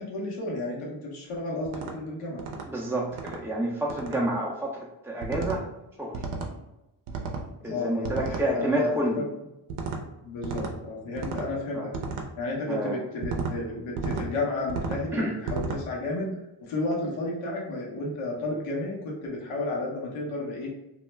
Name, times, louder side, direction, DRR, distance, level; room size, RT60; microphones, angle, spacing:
voice 1, 0.0-2.4 7.6-8.9 10.2-11.9 12.4-20.7, left 2 dB, 85° left, -3 dB, 0.8 m, -32 dB
sound 1, 1.7-1.9 2.4-2.7 3.1-3.4 3.9-4.2 5.2-5.6 6.1-6.5 7.1-7.5 8.0-8.5 9.7-10.0 10.4-10.7 11.2-11.5 11.9-12.3 13.2-13.6 14.0-14.3 14.7-15.0 15.5-15.8, right 4 dB, 80° right, 0.6 m, -32 dB
voice 2, 2.7-4.8 5.0-5.7 6.0-6.1 7.6-9.2 11.7-11.9 12.7-13.0 15.1-15.3, right 1 dB, 5° right, -4 dB, 0.3 m, -28 dB
2.3 x 2.1 x 3.0 m, 0.94 s
supercardioid pair, 55°, 49 cm